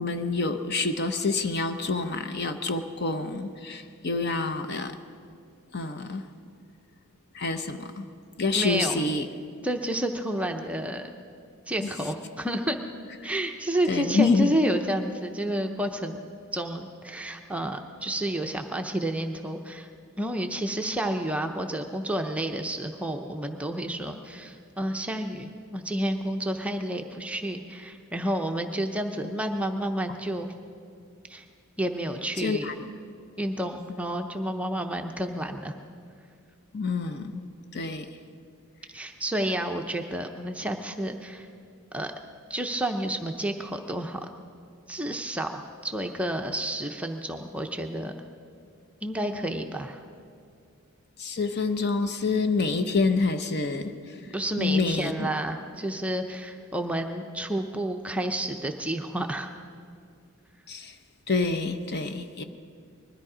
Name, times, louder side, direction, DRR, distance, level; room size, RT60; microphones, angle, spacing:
voice 1, 0.0-5.0 5.7-6.3 7.3-8.0 8.4-9.3 11.8-11.9 13.9-14.5 32.4-32.7 36.7-37.3 37.7-38.1 51.2-54.1 54.6-55.3 60.7-60.9 61.3-62.4, left 3 dB, 45° left, 8 dB, 0.7 m, -27 dB
voice 2, 8.5-9.0 9.6-11.1 11.7-12.8 13.2-16.2 16.5-19.9 20.2-30.5 31.3-31.4 31.8-32.7 33.4-35.7 38.9-41.5 41.9-42.1 42.5-44.3 44.9-48.1 49.0-50.0 54.3-59.5, right 1 dB, 5° right, 4 dB, 0.6 m, -30 dB
21.0 x 13.5 x 4.9 m, 2.3 s
head